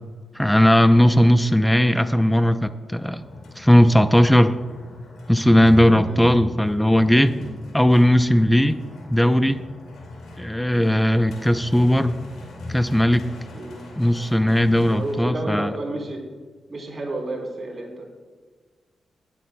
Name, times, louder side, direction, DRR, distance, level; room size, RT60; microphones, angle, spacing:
voice 1, 0.3-3.2 3.6-4.6 5.3-7.3 7.7-8.8 9.1-9.6 10.4-12.2 12.7-13.3 14.0-15.7, equal, 5° left, 11 dB, 0.6 m, -17 dB
sound 1, 2.8-15.1, left 2 dB, 80° left, 2.4 m, -39 dB
voice 2, 14.9-16.2 16.7-18.1, right 2 dB, 50° right, 0 dB, 3.5 m, -31 dB
19.5 x 8.3 x 2.3 m, 1.5 s
supercardioid pair, 45°, 0 cm